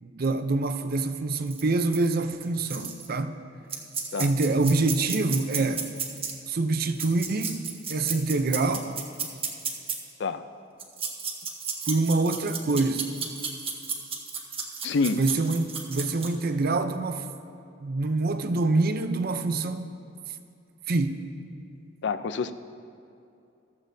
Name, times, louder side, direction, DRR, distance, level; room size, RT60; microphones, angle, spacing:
voice 1, 0.0-3.3 4.2-5.9 6.5-7.6 7.9-9.0 11.9-13.1 15.2-17.2 17.8-19.9 20.9-21.2, right 3 dB, 50° right, 9 dB, 0.6 m, -25 dB
sound 1, 1.5-1.6 1.9-2.1 2.4-3.1 3.7-6.3 6.9-10.0 10.8-16.4, right 6 dB, 30° right, 1.1 m, -33 dB
voice 2, 14.8-15.2 22.0-22.5, left 4 dB, 65° left, 11 dB, 0.5 m, -27 dB
14.5 x 13.5 x 2.7 m, 2.6 s
head